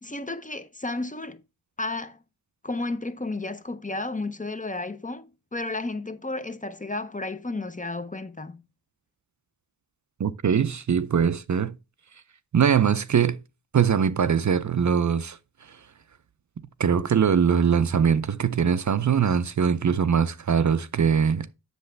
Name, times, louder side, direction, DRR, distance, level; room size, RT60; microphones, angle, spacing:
voice 1, 0.0-1.4 1.8-2.2 2.6-5.3 5.5-8.6, left 2 dB, 20° left, 0.6 m, -32 dB
voice 2, 10.2-11.7 12.5-13.4 13.7-15.4 15.7-15.8 16.8-21.5, right 7 dB, 50° right, 0.5 m, -22 dB
7.9 x 6.7 x 3.3 m
wide cardioid pair, 60°, 37 cm